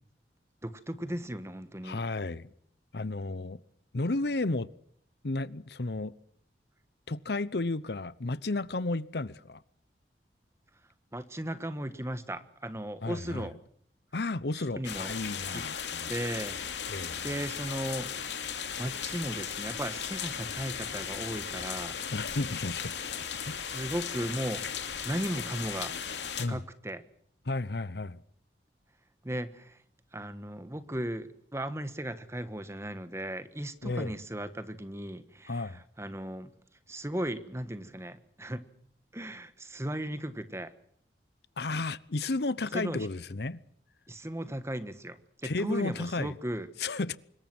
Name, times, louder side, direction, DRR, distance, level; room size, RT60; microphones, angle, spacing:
voice 1, 0.6-2.0 11.1-13.6 14.5-15.1 15.5-15.6 16.1-16.6 17.2-18.4 18.8-22.0 23.5-26.0 26.4-27.0 29.2-29.8 30.1-36.5 36.9-38.7 39.1-40.7 42.7-43.1 44.1-46.7, right 1 dB, 15° right, 1.4 m, -36 dB
voice 2, 1.8-2.5 2.9-3.6 3.9-4.7 5.2-6.1 7.1-9.6 13.0-13.5 14.1-16.1 16.9-17.2 22.1-23.1 23.5-23.6 26.4-26.6 27.5-28.2 33.8-34.1 35.5-35.8 41.6-43.6 45.4-46.3 46.8-47.2, left 2 dB, 65° left, 0.8 m, -33 dB
sound 1, 14.8-26.5, left 7 dB, 80° left, 2.8 m, -36 dB
25.5 x 21.5 x 6.2 m
head